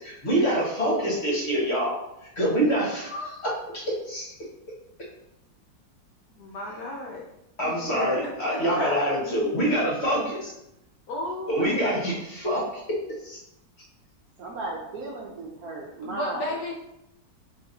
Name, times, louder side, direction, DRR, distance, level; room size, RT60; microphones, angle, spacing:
voice 1, 0.0-2.0 2.4-4.2 7.6-10.5 11.5-12.8 13.2-13.4, right 1 dB, 40° left, -4 dB, 1.3 m, -26 dB
voice 2, 6.4-7.3 7.6-9.0 11.1-12.0 16.0-16.7, left 1 dB, 65° left, -2 dB, 1.0 m, -34 dB
voice 3, 14.4-16.7, right 2 dB, 65° right, -1 dB, 1.0 m, -35 dB
3.9 x 3.2 x 3.9 m, 0.85 s
omnidirectional pair, 2.0 m